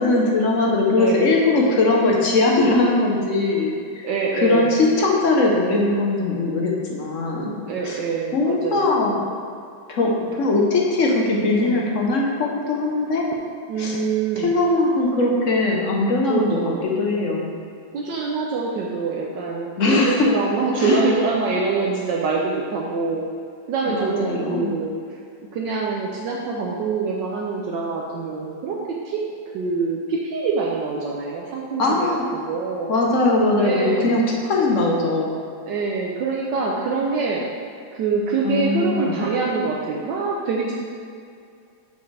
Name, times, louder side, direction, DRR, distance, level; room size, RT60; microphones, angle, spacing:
voice 1, 0.0-8.0 8.3-9.3 9.9-13.3 13.8-14.0 14.4-17.5 19.8-20.3 20.8-21.0 23.9-24.8 31.8-32.2 32.9-35.4 38.4-39.2, left 2 dB, 55° left, -1 dB, 0.9 m, -20 dB
voice 2, 0.9-1.3 4.0-4.8 7.7-8.9 10.4-10.8 11.6-11.8 13.7-14.6 16.3-16.8 17.9-23.3 23.7-25.2 25.5-28.8 29.0-29.2 29.5-32.0 32.3-32.9 33.6-34.3 35.7-37.4 37.9-40.7, right 4 dB, 70° right, -3 dB, 1.3 m, -25 dB
6.8 x 6.7 x 3.3 m, 2.4 s
omnidirectional pair, 2.1 m